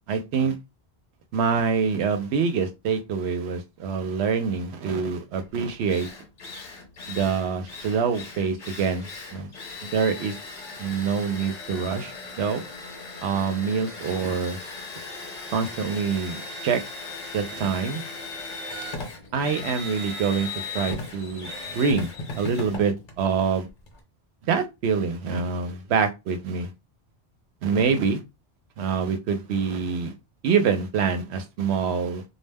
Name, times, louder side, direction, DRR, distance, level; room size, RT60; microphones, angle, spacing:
voice 1, 0.1-0.6 1.3-6.1 7.1-9.5 9.8-10.4 10.8-12.0 12.4-12.6 13.2-14.6 15.5-16.8 17.3-18.0 19.3-22.1 22.4-23.7 24.4-26.7 27.6-28.2 28.8-30.1 30.4-32.2, right 6 dB, 90° right, 0.8 m, -25 dB
Drill, 5.4-5.5 5.9-24.0, left 3 dB, 45° left, 0.8 m, -38 dB
2.2 x 2.1 x 3.3 m
omnidirectional pair, 1.1 m